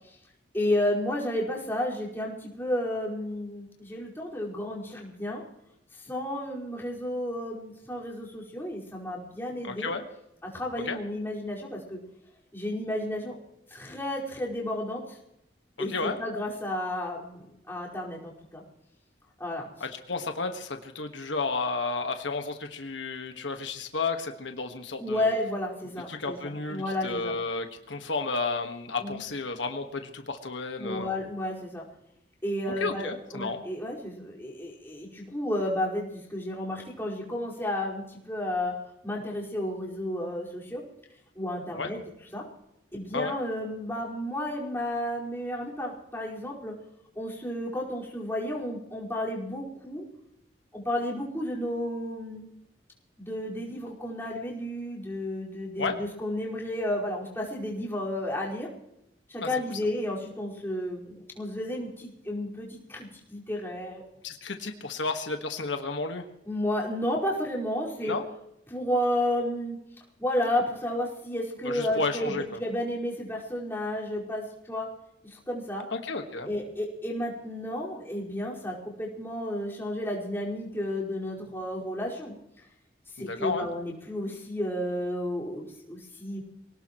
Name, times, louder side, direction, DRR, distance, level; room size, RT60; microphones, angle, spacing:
voice 1, 0.5-5.4 6.1-9.9 10.4-12.0 12.5-13.3 13.7-15.0 15.8-18.6 19.4-19.7 25.0-27.3 29.0-29.2 30.8-31.8 32.4-38.7 39.0-40.8 41.3-42.0 42.3-42.4 42.9-46.7 47.1-50.0 50.7-52.5 53.2-58.7 59.3-64.0 66.4-68.2 68.7-69.8 70.2-74.9 75.3-75.8 76.4-82.3 83.2-86.4, left 1 dB, 15° left, -5 dB, 5.0 m, -32 dB
voice 2, 9.6-10.0 10.8-11.0 15.9-16.2 19.8-25.3 26.1-31.1 32.7-33.6 41.7-41.9 43.1-43.3 55.8-56.0 59.4-59.5 64.2-66.2 68.0-68.3 71.6-72.4 75.9-76.5 83.2-83.7, left 3 dB, 90° left, 5 dB, 1.6 m, -32 dB
25.0 x 18.5 x 3.1 m, 0.81 s
head